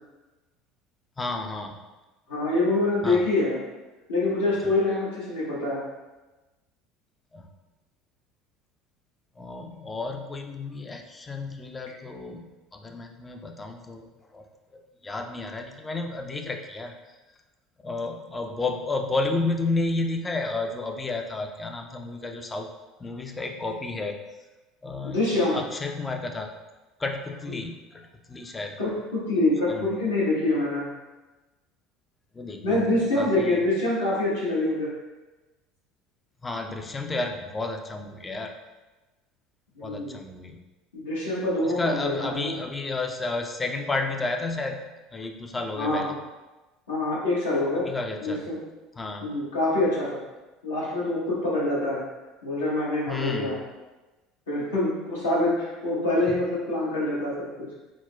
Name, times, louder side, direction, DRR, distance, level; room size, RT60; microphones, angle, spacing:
voice 1, 1.2-1.8 3.0-3.3 7.3-7.5 9.4-14.5 14.7-16.9 17.8-22.7 23.0-24.2 24.8-26.5 27.0-28.8 29.7-29.9 32.3-33.7 36.4-38.5 39.8-40.6 41.8-44.8 45.1-46.1 47.7-48.5 49.0-49.3 53.1-53.6 56.3-56.4, left 3 dB, 20° left, 4 dB, 0.4 m, -32 dB
voice 2, 2.3-3.6 4.1-5.8 25.0-25.6 27.5-27.6 28.8-30.8 32.6-34.9 39.8-40.2 40.9-42.5 45.7-46.1 46.9-47.8 48.2-48.6 49.2-50.1 50.6-52.0 52.4-53.6 54.5-57.3, left 2 dB, 85° left, -8 dB, 1.1 m, -25 dB
3.9 x 2.1 x 2.2 m, 1.1 s
hypercardioid pair, 70°, 0 cm